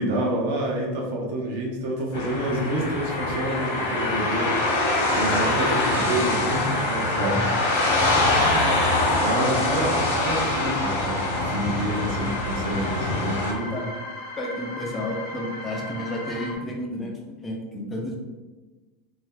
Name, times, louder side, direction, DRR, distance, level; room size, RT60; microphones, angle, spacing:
voice 1, 0.0-4.5 4.8-7.5 8.1-13.7, right 1 dB, 60° right, -1 dB, 0.8 m, -28 dB
sound 1, 2.1-13.5, left 2 dB, 85° left, 1.0 m, -24 dB
sound 2, 3.1-16.6, left 2 dB, 60° left, 0.6 m, -37 dB
voice 2, 13.7-14.0 14.4-18.2, left 1 dB, 15° left, 0 dB, 0.4 m, -31 dB
2.8 x 2.2 x 3.7 m, 1.3 s
supercardioid pair, 165°, 0 cm